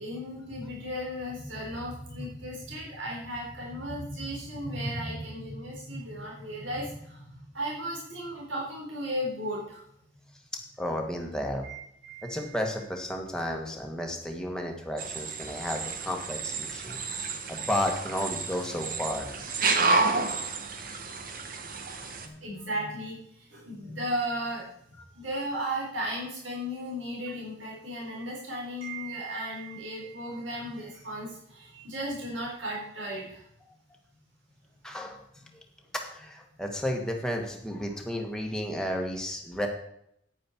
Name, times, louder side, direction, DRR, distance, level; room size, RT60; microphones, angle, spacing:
voice 1, 0.0-9.9 11.6-12.6 22.2-24.7 25.1-33.5, equal, 85° right, -3 dB, 4.3 m, -35 dB
voice 2, 10.8-11.7 12.2-19.3 34.8-35.2 36.1-39.7, equal, 5° left, 1 dB, 1.6 m, -32 dB
sound 1, 15.0-22.3, right 4 dB, 45° right, 1.2 m, -30 dB
9.8 x 9.4 x 4.5 m, 0.73 s
head